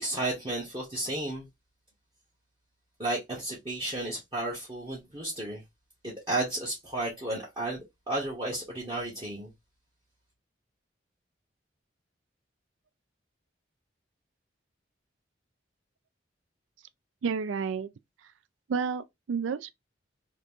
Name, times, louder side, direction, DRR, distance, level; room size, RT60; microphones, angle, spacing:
voice 1, 0.0-1.5 3.0-5.6 6.0-9.5, right 2 dB, 25° right, 0.9 m, -33 dB
voice 2, 17.2-17.9 18.7-19.7, right 6 dB, 90° right, 0.4 m, -30 dB
2.9 x 2.5 x 3.5 m
head